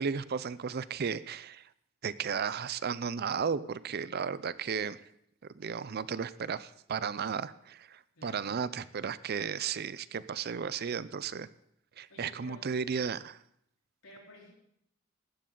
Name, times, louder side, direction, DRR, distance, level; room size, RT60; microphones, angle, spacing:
voice 1, 0.0-1.7 2.0-5.0 5.5-11.5 12.0-13.4, right 6 dB, 50° right, 16 dB, 0.5 m, -34 dB
voice 2, 8.1-9.0 12.1-12.7 14.0-14.5, left 2 dB, 90° left, -2 dB, 4.3 m, -54 dB
15.5 x 12.0 x 3.9 m, 0.72 s
head